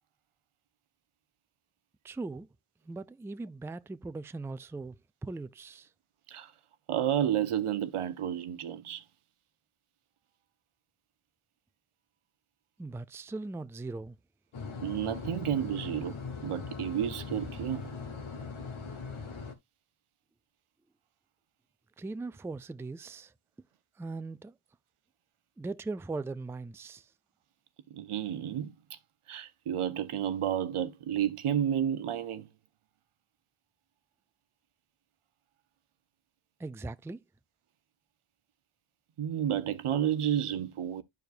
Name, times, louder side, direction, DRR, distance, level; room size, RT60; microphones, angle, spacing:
voice 1, 2.0-2.5 2.9-5.0 5.2-5.9 12.8-14.2 22.0-23.3 24.0-24.5 25.6-27.1 36.6-37.2, right 3 dB, 5° right, 0.3 m, -39 dB
voice 2, 6.9-9.0 14.8-16.2 16.4-17.9 27.9-28.7 29.3-32.5 39.2-41.0, right 10 dB, 90° right, 0.7 m, -31 dB
sound 1, 14.5-19.5, left 4 dB, 70° left, 1.2 m, -40 dB
11.0 x 4.7 x 2.4 m
cardioid pair, 40°, 49 cm